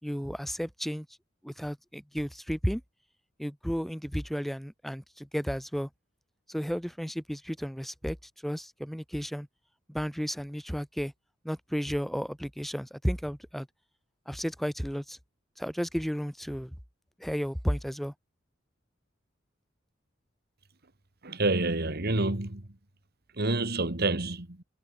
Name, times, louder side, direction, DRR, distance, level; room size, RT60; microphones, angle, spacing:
voice 1, 0.0-1.1 1.4-2.8 3.4-5.9 6.5-8.2 8.4-9.5 9.9-11.1 11.4-13.7 14.3-15.2 15.6-16.8 17.2-18.1, equal, ahead, 2.1 m, -33 dB
voice 2, 21.2-22.8 23.3-24.6, right 2 dB, 55° right, 2.2 m, -28 dB
head